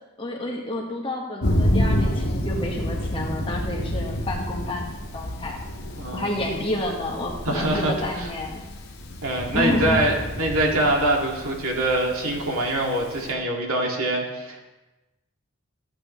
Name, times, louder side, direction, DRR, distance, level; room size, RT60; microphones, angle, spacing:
voice 1, 0.2-4.8 5.1-5.6 6.1-8.6 9.5-10.0, left 1 dB, 25° left, -1 dB, 1.4 m, -29 dB
Thunder, 1.4-13.3, equal, 70° left, 1.6 m, -29 dB
voice 2, 6.0-6.6 7.5-8.3 9.2-14.6, right 1 dB, 80° right, 0 dB, 2.1 m, -24 dB
14.5 x 8.3 x 3.1 m, 1.1 s
head